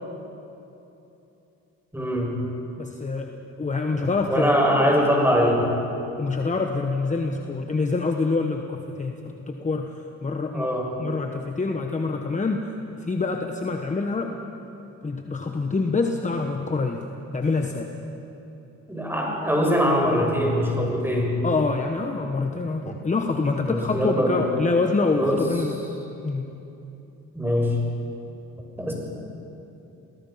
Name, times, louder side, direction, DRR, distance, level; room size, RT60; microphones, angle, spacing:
voice 1, 1.9-2.3 4.3-5.6 10.5-10.9 18.9-21.4 23.6-24.5 25.2-25.5 27.3-27.7 28.8-28.9, equal, 5° right, -1 dB, 6.5 m, -22 dB
voice 2, 2.8-4.5 6.2-10.7 11.0-12.6 12.9-14.3 15.0-17.0 17.3-17.9 21.4-25.7 26.2-26.5, left 3 dB, 25° left, 4 dB, 1.3 m, -26 dB
29.0 x 18.5 x 5.8 m, 3.0 s
cardioid pair, 90°, 30 cm